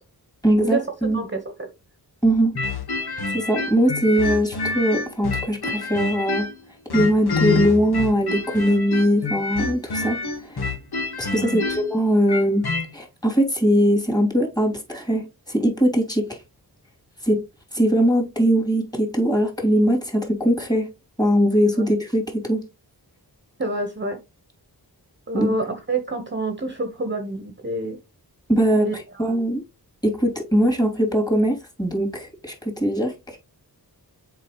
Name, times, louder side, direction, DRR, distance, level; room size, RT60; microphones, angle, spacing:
voice 1, 0.4-1.2 2.2-2.6 3.3-6.5 6.9-10.7 11.2-12.7 12.9-16.4 17.2-17.4 17.7-20.9 21.2-22.6 25.3-25.5 28.5-29.6 30.0-33.4, equal, 10° left, 3.0 m, -21 dB
voice 2, 1.1-1.7 11.4-11.6 23.6-24.2 25.3-28.0 28.8-29.4, right 2 dB, 30° right, 1.2 m, -27 dB
sound 1, 2.6-6.6 6.9-12.9, left 3 dB, 75° left, 1.9 m, -27 dB
7.5 x 4.7 x 3.1 m
wide cardioid pair, 80°, 39 cm